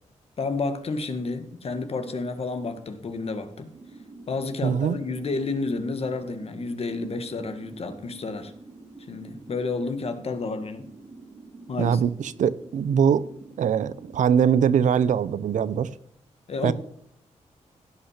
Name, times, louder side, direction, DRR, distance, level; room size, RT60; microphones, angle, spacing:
voice 1, 0.4-3.7 4.3-8.5 9.1-10.9 11.7-12.0 16.5-16.7, left 3 dB, 55° left, 8 dB, 1.7 m, -30 dB
sound 1, 3.7-15.0, right 3 dB, 45° right, 1.4 m, -47 dB
voice 2, 4.6-5.0 11.8-13.2 13.6-15.9 16.6-16.7, right 8 dB, 85° right, 17 dB, 0.7 m, -22 dB
16.0 x 5.8 x 5.8 m, 0.69 s
wide cardioid pair, 110°, 13 cm